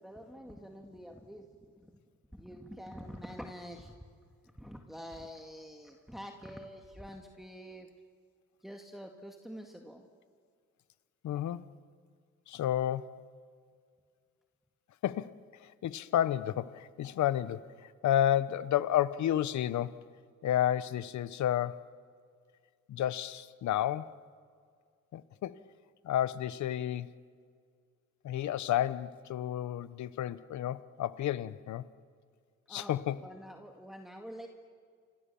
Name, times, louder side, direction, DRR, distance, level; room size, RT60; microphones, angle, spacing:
voice 1, 0.0-1.5 1.8-1.9 2.3-4.0 4.6-7.9 8.6-10.1 32.7-34.5, equal, ahead, 2 dB, 2.1 m, -46 dB
voice 2, 11.2-11.7 12.5-13.1 15.0-17.7 18.0-20.1 20.4-21.8 22.9-24.2 25.1-25.6 26.0-27.1 28.2-31.8 32.7-33.2, left 11 dB, 70° left, 15 dB, 1.0 m, -31 dB
30.0 x 27.5 x 7.1 m, 2.1 s
cardioid pair, 90°, 30 cm